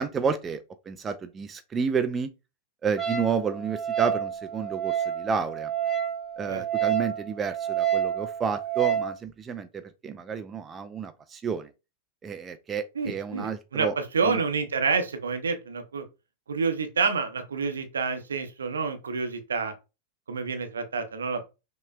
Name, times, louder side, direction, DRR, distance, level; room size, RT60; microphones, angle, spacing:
voice 1, 0.0-2.3 2.8-5.7 6.4-11.7 12.2-13.9 14.2-14.4, right 6 dB, 20° right, 0.4 m, -30 dB
Wind instrument woodwind instrument, 3.0-9.1, right 9 dB, 5° right, 1.8 m, -29 dB
voice 2, 12.9-16.0 16.5-19.7 20.3-21.4, right 5 dB, 70° right, 0.7 m, -28 dB
5.6 x 3.0 x 2.2 m
figure-of-eight pair, 90°, 0 cm